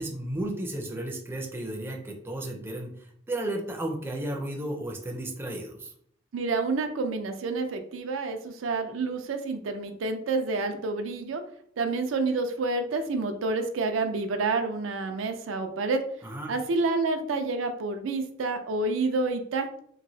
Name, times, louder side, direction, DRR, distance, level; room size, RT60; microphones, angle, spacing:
voice 1, 0.0-5.9 16.2-16.5, right 1 dB, 10° right, 1 dB, 0.4 m, -33 dB
voice 2, 6.3-11.4 11.8-16.0 16.5-19.8, right 3 dB, 85° right, 6 dB, 0.4 m, -28 dB
3.0 x 2.6 x 2.7 m, 0.65 s
head